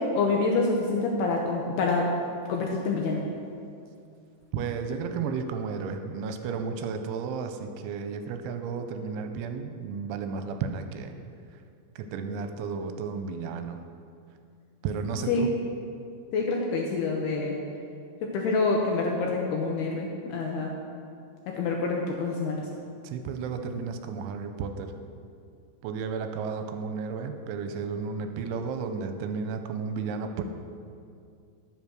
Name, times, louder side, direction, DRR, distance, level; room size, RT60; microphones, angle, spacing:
voice 1, 0.0-2.1 2.5-3.2 15.3-15.4 16.3-17.6 18.2-20.7 21.5-22.6, left 3 dB, 75° left, 0 dB, 2.4 m, -27 dB
voice 2, 4.5-11.2 12.0-13.8 14.8-15.5 23.0-24.9 25.8-30.4, right 5 dB, 85° right, 7 dB, 3.1 m, -33 dB
11.0 x 7.8 x 6.2 m, 2.4 s
omnidirectional pair, 5.5 m